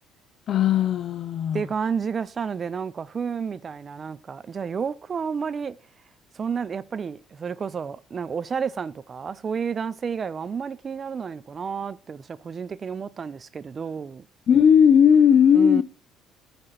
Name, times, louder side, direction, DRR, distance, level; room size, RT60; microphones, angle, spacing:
voice 1, 0.5-1.6 14.5-15.8, left 8 dB, 55° left, 0.5 m, -17 dB
voice 2, 1.5-5.8 6.3-14.3 15.5-15.8, right 6 dB, 40° right, 0.4 m, -31 dB
6.4 x 6.1 x 4.1 m
supercardioid pair, 90°, 0 cm